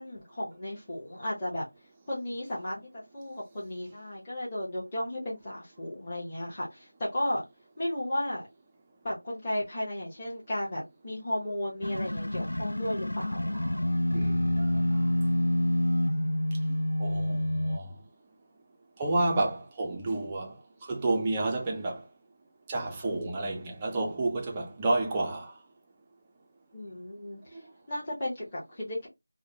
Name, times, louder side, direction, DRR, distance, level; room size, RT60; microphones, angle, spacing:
voice 1, 0.0-1.7 2.1-7.4 7.8-8.4 9.0-13.4 26.7-27.6 27.9-29.1, left 1 dB, 15° left, 0.9 m, -34 dB
sound 1, 11.8-17.8, left 1 dB, 90° left, 0.5 m, -28 dB
voice 2, 14.1-15.1 16.7-17.9 19.0-22.0 22.7-25.5, right 2 dB, 10° right, 0.4 m, -30 dB
4.7 x 2.0 x 2.7 m
figure-of-eight pair, 175°, 0 cm